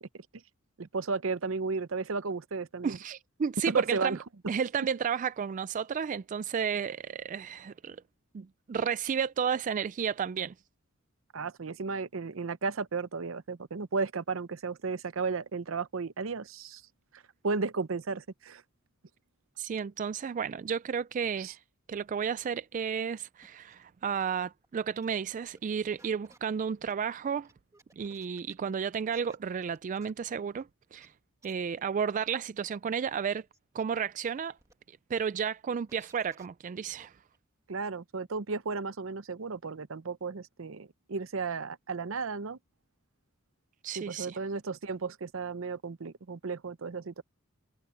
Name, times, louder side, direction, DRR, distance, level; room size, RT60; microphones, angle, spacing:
voice 1, 0.8-3.0 3.7-4.2 11.3-16.8 17.1-18.6 21.4-21.5 37.7-42.6 44.0-47.2, right 4 dB, 70° right, 0.7 m, -34 dB
voice 2, 2.8-4.2 4.5-8.0 8.3-10.5 19.6-21.6 21.9-27.5 28.0-31.1 31.4-33.4 33.7-34.6 34.9-37.1 43.8-44.4, right 7 dB, 40° right, 0.3 m, -32 dB
sound 1, 22.4-22.5 23.4-23.8 24.2-24.3 24.6-24.7 25.0-25.1 25.6-25.7 26.0-27.0 27.4-28.7 29.1-29.4 29.7-30.1 30.6-30.7 31.0-31.1 31.4-31.5 32.2-32.3 33.0-33.1 33.5-33.8 34.5-34.7 35.9-36.5 36.8-37.1 37.3-37.4, right 2 dB, 15° right, 2.0 m, -59 dB
head